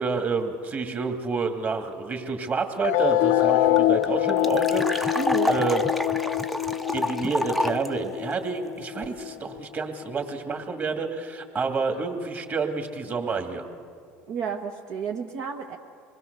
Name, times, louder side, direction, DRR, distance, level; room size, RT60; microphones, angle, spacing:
voice 1, 0.0-5.2 5.5-5.8 6.9-13.7, right 4 dB, 35° right, 4 dB, 2.4 m, -29 dB
sound 1, 2.8-9.8, left 14 dB, 80° left, 0.6 m, -25 dB
sound 2, 3.1-3.2 3.4-3.5 3.8-7.9, equal, ahead, 0.6 m, -29 dB
voice 2, 5.1-5.5 14.3-15.8, right 6 dB, 65° right, 1 dB, 1.3 m, -31 dB
25.5 x 20.0 x 6.8 m, 2.2 s
supercardioid pair, 100°, 6 cm